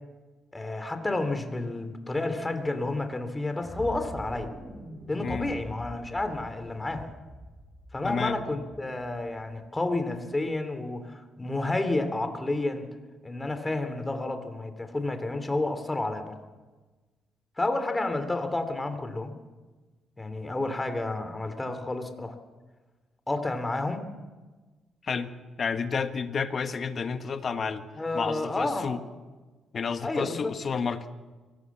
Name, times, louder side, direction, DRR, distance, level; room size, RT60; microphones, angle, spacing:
voice 1, 0.5-4.5 5.1-7.1 7.9-12.8 13.2-16.3 17.6-19.4 20.2-22.3 23.3-24.1 28.0-28.9 30.0-30.5, left 2 dB, 15° left, 8 dB, 3.0 m, -30 dB
sound 1, 3.6-9.7, right 1 dB, 20° right, 5.7 m, -44 dB
voice 2, 8.0-8.4 25.0-25.3 25.6-27.8 28.1-29.0 29.7-31.0, left 5 dB, 45° left, 8 dB, 1.6 m, -30 dB
24.5 x 18.5 x 7.3 m, 1.3 s
cardioid pair, 90°, 0 cm